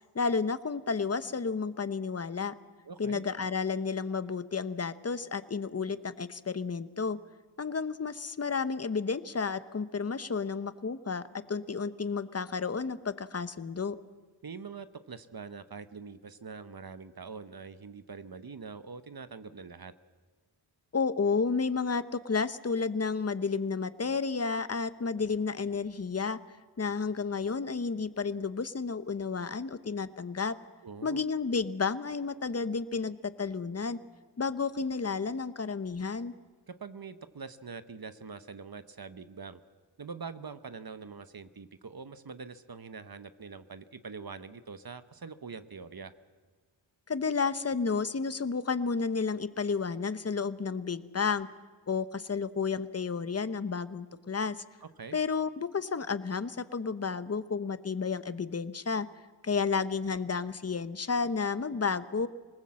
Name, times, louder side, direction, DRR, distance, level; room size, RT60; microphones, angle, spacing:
voice 1, 0.1-2.5 3.0-7.2 7.6-14.0 20.9-26.4 26.8-30.6 31.0-34.0 34.4-36.3 47.1-51.5 51.9-54.6 55.1-59.1 59.4-62.3, left 5 dB, 30° left, 14 dB, 0.9 m, -31 dB
voice 2, 2.8-3.2 14.4-19.9 30.8-31.2 36.7-39.6 40.0-46.1 54.8-55.2, right 5 dB, 50° right, 11 dB, 1.0 m, -44 dB
26.0 x 19.5 x 7.6 m, 1.4 s
wide cardioid pair, 85°, 46 cm